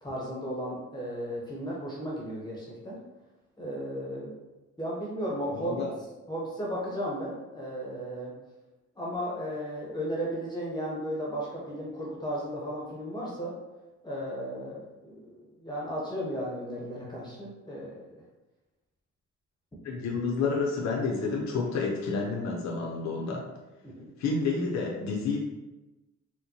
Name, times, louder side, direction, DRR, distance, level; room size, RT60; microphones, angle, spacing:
voice 1, 0.0-3.0 3.6-4.3 4.8-5.8 6.3-8.3 9.0-13.5 14.0-18.2 23.8-24.1, equal, 15° left, -5 dB, 0.7 m, -35 dB
voice 2, 5.5-5.9 19.8-23.5 24.2-25.4, left 4 dB, 65° left, -2 dB, 0.6 m, -29 dB
4.3 x 2.2 x 2.7 m, 1.1 s
cardioid pair, 135°, 30 cm